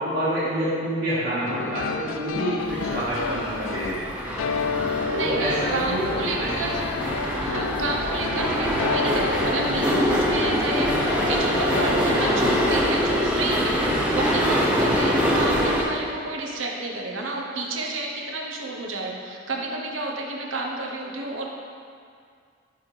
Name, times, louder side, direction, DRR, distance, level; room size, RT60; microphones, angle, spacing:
voice 1, 0.0-4.3 5.0-6.5 14.7-15.0, right 1 dB, 55° right, -13 dB, 1.5 m, -28 dB
sound 1, 1.5-12.9, left 5 dB, 90° left, 0.3 m, -31 dB
sound 2, 2.6-15.8, equal, 5° right, 0.7 m, -24 dB
voice 2, 5.0-6.9 7.4-21.5, right 2 dB, 80° right, -1 dB, 0.8 m, -31 dB
11.5 x 4.1 x 3.2 m, 2.2 s
head